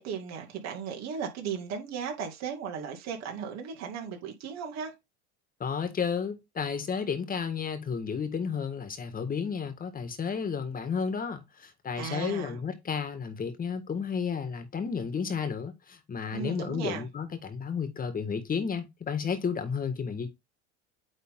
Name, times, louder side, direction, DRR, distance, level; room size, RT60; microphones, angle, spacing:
voice 1, 0.0-4.9 12.0-12.6 16.3-17.0, right 7 dB, 50° right, 2.4 m, -36 dB
voice 2, 5.6-20.3, left 6 dB, 25° left, 1.8 m, -32 dB
9.0 x 3.7 x 3.7 m
supercardioid pair, 105°, 33 cm